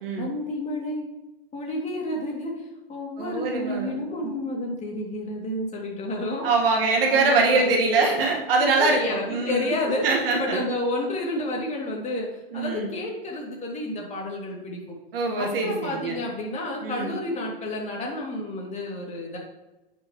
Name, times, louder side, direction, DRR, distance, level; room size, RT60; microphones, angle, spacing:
voice 1, 0.2-1.1 1.5-2.5 2.9-6.5 7.1-8.1 8.6-10.1 10.3-12.3 12.5-15.0 15.4-19.4, left 1 dB, 25° left, -1 dB, 2.5 m, -30 dB
voice 2, 3.2-4.3 6.4-9.8 10.0-10.6 12.5-12.9 15.1-16.2 16.8-17.1, right 3 dB, 70° right, 0 dB, 1.7 m, -23 dB
9.8 x 6.0 x 3.1 m, 1.0 s
hypercardioid pair, 105°, 30 cm